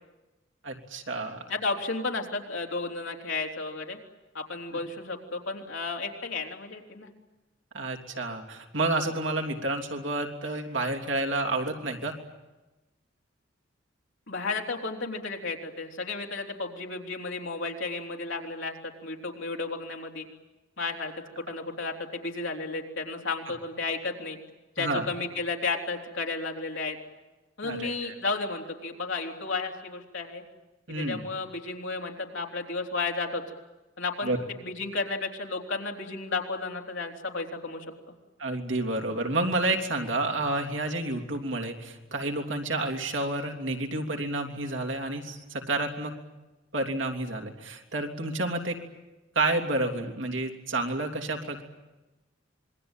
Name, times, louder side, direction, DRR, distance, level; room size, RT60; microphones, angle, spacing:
voice 1, 0.6-1.4 4.7-4.8 7.7-12.1 24.8-25.0 27.6-28.1 30.9-31.2 34.2-34.4 38.4-46.1 46.7-48.7 49.3-51.6, right 2 dB, 75° right, 3 dB, 3.3 m, -30 dB
voice 2, 1.5-4.0 4.3-7.1 14.3-20.3 20.8-24.4 24.8-27.0 27.6-30.4 30.9-33.4 34.0-38.1, left 3 dB, 70° left, 1 dB, 3.7 m, -33 dB
26.5 x 22.0 x 9.1 m, 1.1 s
head